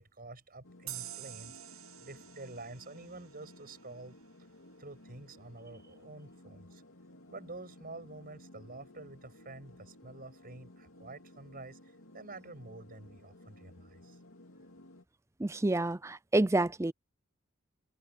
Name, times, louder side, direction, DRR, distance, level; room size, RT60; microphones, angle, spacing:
voice 1, 0.0-4.2 4.8-6.8 7.3-14.2, right 2 dB, 45° right, 6.5 m, -48 dB
sound 1, 0.6-15.0, left 1 dB, 70° left, 2.8 m, -56 dB
sound 2, 0.9-4.2, right 13 dB, 70° right, 1.1 m, -47 dB
voice 2, 15.4-16.9, right 2 dB, 15° right, 0.5 m, -28 dB
head